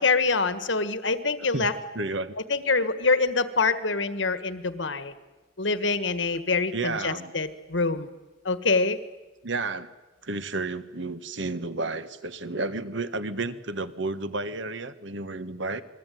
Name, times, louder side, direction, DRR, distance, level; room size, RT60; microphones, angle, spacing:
voice 1, 0.0-1.7 2.5-5.1 5.6-8.1 8.4-9.0, left 4 dB, 70° left, 12 dB, 1.7 m, -25 dB
voice 2, 1.9-2.3 6.7-7.3 9.4-9.9 10.2-15.8, right 3 dB, 70° right, 12 dB, 1.5 m, -31 dB
28.0 x 21.5 x 9.4 m, 1.2 s
head